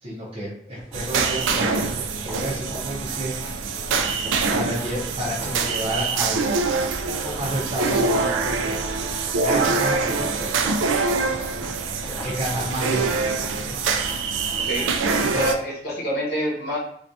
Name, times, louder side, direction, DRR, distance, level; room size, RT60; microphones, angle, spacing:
voice 1, 0.0-3.3 4.5-6.7 7.0-8.8 9.3-11.1 12.0-13.2 13.6-13.8 15.3-15.5, equal, 30° right, -8 dB, 0.5 m, -31 dB
sound 1, 0.8-4.6 4.9-6.1 6.4-8.1 8.4-9.0 9.3-15.5, equal, 20° left, 1.0 m, -41 dB
sound 2, 0.9-15.6, right 4 dB, 90° right, 0.3 m, -24 dB
voice 2, 14.6-14.9 15.3-16.8, equal, 60° left, -4 dB, 0.8 m, -27 dB
2.4 x 2.2 x 2.6 m, 0.70 s
head